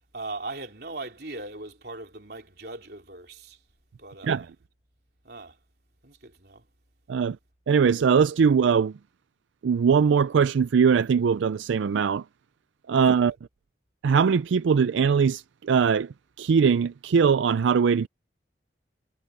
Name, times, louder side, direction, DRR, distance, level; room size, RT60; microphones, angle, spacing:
voice 1, 0.1-3.6 4.0-4.5 5.3-5.6 6.0-6.6 13.2-13.3, right 2 dB, 60° right, 3.7 m, -39 dB
voice 2, 7.7-8.9 9.6-12.2 12.9-13.3 14.0-18.1, right 6 dB, 85° right, 0.4 m, -21 dB
head